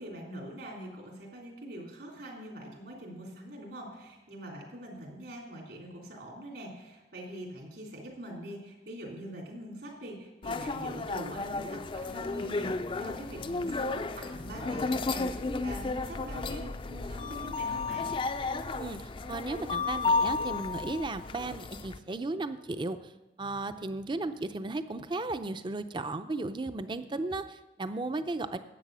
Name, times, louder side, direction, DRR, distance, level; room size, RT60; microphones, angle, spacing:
voice 1, 0.0-18.1, right 1 dB, 70° right, -1 dB, 3.1 m, -43 dB
sound 1, 10.4-22.0, left 3 dB, 30° left, 0.4 m, -33 dB
voice 2, 19.3-23.1 23.4-28.6, right 2 dB, 25° right, 11 dB, 0.5 m, -35 dB
11.0 x 8.2 x 6.1 m, 1.1 s
head